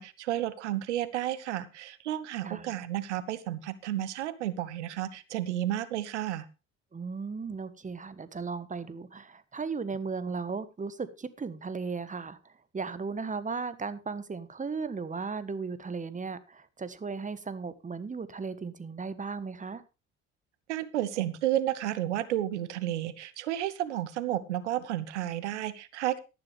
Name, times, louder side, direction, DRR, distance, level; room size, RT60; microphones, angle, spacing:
voice 1, 0.0-6.5 20.7-26.2, right 13 dB, 75° right, 16 dB, 1.0 m, -32 dB
voice 2, 2.4-2.8 6.9-19.8, right 4 dB, 20° right, 14 dB, 1.4 m, -36 dB
13.0 x 11.5 x 3.4 m, 0.28 s
figure-of-eight pair, 50°, 35 cm